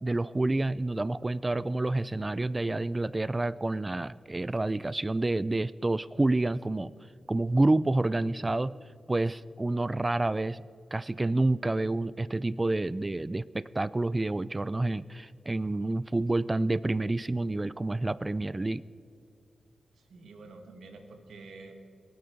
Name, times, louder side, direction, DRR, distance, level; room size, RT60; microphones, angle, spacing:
voice 1, 0.0-6.9 7.3-8.7 9.1-18.8, right 2 dB, 30° right, 19 dB, 0.3 m, -28 dB
voice 2, 19.9-21.7, right 3 dB, 85° right, 5 dB, 1.7 m, -48 dB
24.0 x 8.7 x 5.1 m, 2.3 s
cardioid pair, 50°, 0 cm